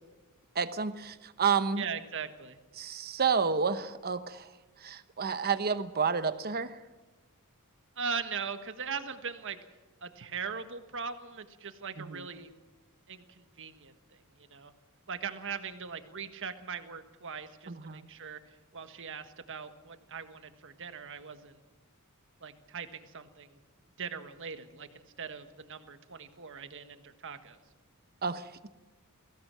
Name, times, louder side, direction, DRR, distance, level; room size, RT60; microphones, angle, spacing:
voice 1, 0.5-1.8 2.8-4.5 4.8-6.8 12.0-12.3 17.7-18.1 28.2-28.7, right 5 dB, 45° right, 12 dB, 1.0 m, -30 dB
voice 2, 1.8-2.6 8.0-9.6 10.0-12.5 13.1-14.7 15.1-21.6 22.4-23.6 24.0-27.6, right 6 dB, 60° right, 9 dB, 1.5 m, -40 dB
21.5 x 16.5 x 7.5 m, 1.2 s
head